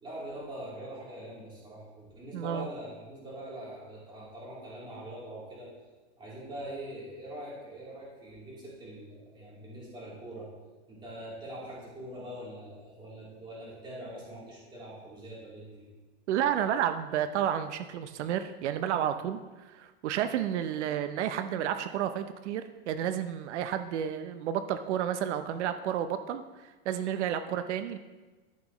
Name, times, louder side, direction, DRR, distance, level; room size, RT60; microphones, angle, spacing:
voice 1, 0.0-5.7 6.2-10.5 10.9-15.9, right 1 dB, 15° right, -7 dB, 3.0 m, -43 dB
voice 2, 2.3-2.7 16.3-28.0, right 10 dB, 85° right, 9 dB, 0.7 m, -31 dB
13.5 x 6.1 x 3.0 m, 1.2 s
supercardioid pair, 165°, 34 cm